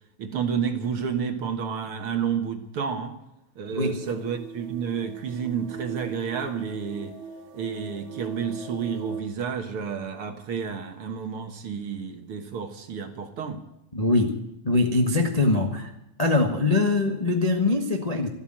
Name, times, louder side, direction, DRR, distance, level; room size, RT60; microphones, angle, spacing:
voice 1, 0.2-3.1 3.6-7.1 7.5-13.6, right 6 dB, 55° right, 6 dB, 1.8 m, -30 dB
voice 2, 3.7-4.0 13.9-14.3 14.6-15.9 16.2-18.3, left 2 dB, 70° left, 2 dB, 0.3 m, -22 dB
sound 1, 3.9-9.2, right 7 dB, 70° right, 2.5 m, -39 dB
14.0 x 13.0 x 7.7 m, 0.88 s
omnidirectional pair, 3.6 m